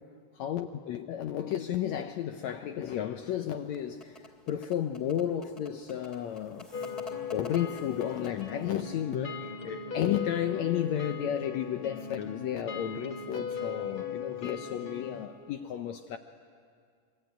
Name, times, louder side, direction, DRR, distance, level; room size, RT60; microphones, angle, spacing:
voice 1, 0.3-6.7 7.3-16.2, left 10 dB, 70° left, 1.8 m, -33 dB
sound 1, 3.7-8.7, left 2 dB, 10° left, 2.5 m, -49 dB
sound 2, 6.7-15.3, left 6 dB, 45° left, 2.2 m, -38 dB
27.5 x 23.0 x 9.2 m
omnidirectional pair, 3.7 m